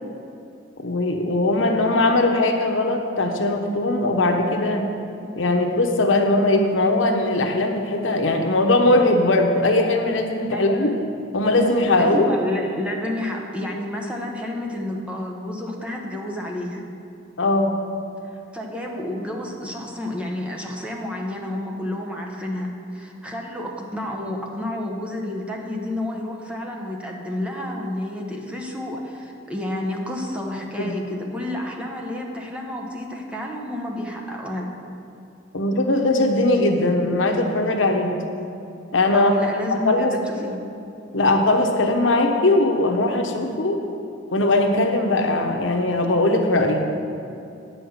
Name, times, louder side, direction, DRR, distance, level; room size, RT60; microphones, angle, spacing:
voice 1, 0.8-4.8 5.4-10.9 11.3-12.3 17.4-17.7 30.8-31.0 35.5-38.2 38.9-39.3 39.8-40.5 41.1-43.8 44.3-46.9, left 2 dB, 90° left, 3 dB, 1.0 m, -20 dB
voice 2, 10.5-11.0 12.0-16.8 18.5-34.7 39.1-40.6, left 1 dB, 5° right, -1 dB, 1.0 m, -30 dB
9.3 x 5.7 x 7.2 m, 2.6 s
head